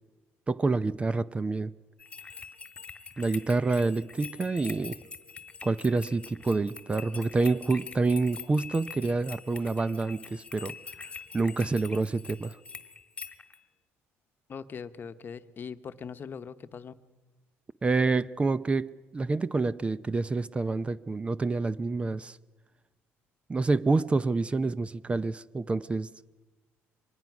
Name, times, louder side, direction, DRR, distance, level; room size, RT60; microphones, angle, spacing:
voice 1, 0.5-1.7 3.2-5.0 5.6-10.8 11.3-12.6 17.8-22.4 23.5-26.1, right 3 dB, 20° right, 0.6 m, -27 dB
sound 1, 2.0-13.6, left 5 dB, 20° left, 1.6 m, -44 dB
voice 2, 14.5-17.0, left 6 dB, 40° left, 1.0 m, -41 dB
24.0 x 20.0 x 6.1 m
cardioid pair, 100°, 5 cm